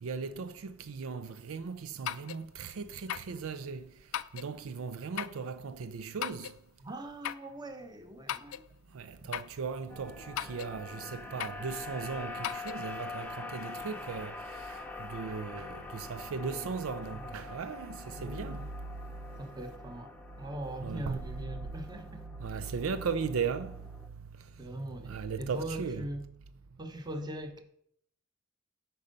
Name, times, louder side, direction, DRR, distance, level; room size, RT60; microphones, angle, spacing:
voice 1, 0.0-3.8 4.3-6.5 8.9-14.4 14.7-14.8 15.1-18.6 20.8-21.2 22.4-23.7 25.0-26.0, right 5 dB, 70° right, 0.5 m, -37 dB
sound 1, 2.0-2.4 3.1-3.3 4.1-4.5 5.2-5.4 6.2-6.6 7.2-7.5 8.3-8.7 9.3-9.6 10.4-10.7 11.4-11.7 12.4-12.7, left 10 dB, 75° left, 0.4 m, -37 dB
voice 2, 6.8-8.6 16.4-16.8 17.1-17.7 18.1-18.7 19.4-22.3 24.6-26.3 26.8-27.6, right 1 dB, 20° right, 1.0 m, -41 dB
sound 2, 9.9-24.1, left 3 dB, 10° left, 0.7 m, -45 dB
9.0 x 5.4 x 5.3 m
head